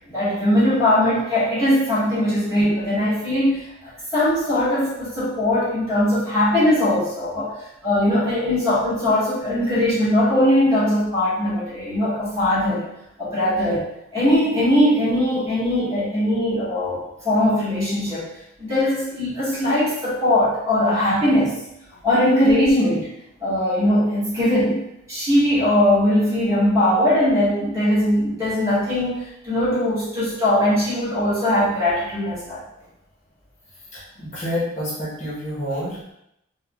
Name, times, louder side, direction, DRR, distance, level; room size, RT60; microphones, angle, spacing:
voice 1, 0.1-7.5 7.8-12.8 13.2-13.8 14.1-18.3 18.6-21.6 22.0-23.1 23.4-32.6, left 1 dB, 15° right, -11 dB, 1.4 m, -20 dB
voice 2, 33.9-36.1, equal, 35° left, -8 dB, 0.8 m, -28 dB
3.5 x 2.2 x 2.2 m, 0.81 s
head